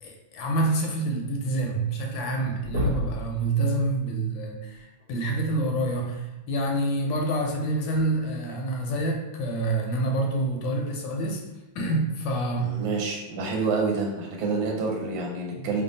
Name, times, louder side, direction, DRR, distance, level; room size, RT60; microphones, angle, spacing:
voice 1, 0.0-11.5 11.7-12.8 15.6-15.7, right 2 dB, 80° left, 1 dB, 1.3 m, -27 dB
sound 1, 2.6-3.3 5.0-5.1 6.9-7.1 7.9-8.0, left 1 dB, 65° right, 1.3 m, -29 dB
voice 2, 12.6-15.8, right 4 dB, 85° right, -1 dB, 1.5 m, -28 dB
3.2 x 2.3 x 3.9 m, 0.98 s
omnidirectional pair, 2.1 m